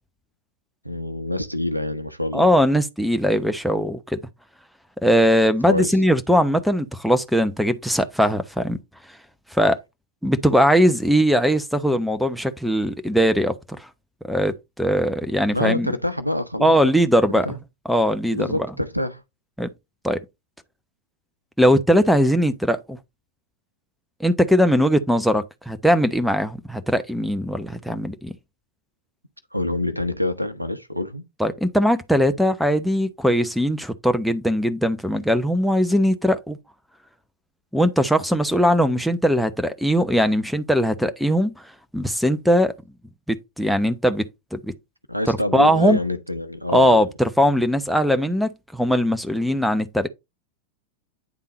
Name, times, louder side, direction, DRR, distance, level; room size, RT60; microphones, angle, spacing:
voice 1, 0.8-2.6 5.7-6.0 15.5-16.9 17.4-17.6 18.3-19.2 29.5-31.2 45.1-47.0, left 1 dB, 90° right, 0.9 m, -26 dB
voice 2, 2.3-4.2 5.0-8.8 9.5-9.8 10.2-13.9 14.2-15.9 16.6-17.5 17.9-18.5 19.6-19.7 20.0-20.2 21.6-23.0 24.2-28.3 31.4-36.6 37.7-41.5 41.9-42.7 43.3-44.6 45.3-46.0 46.7-50.1, equal, ahead, 0.8 m, -20 dB
9.5 x 3.7 x 4.2 m
figure-of-eight pair, 90°, 0 cm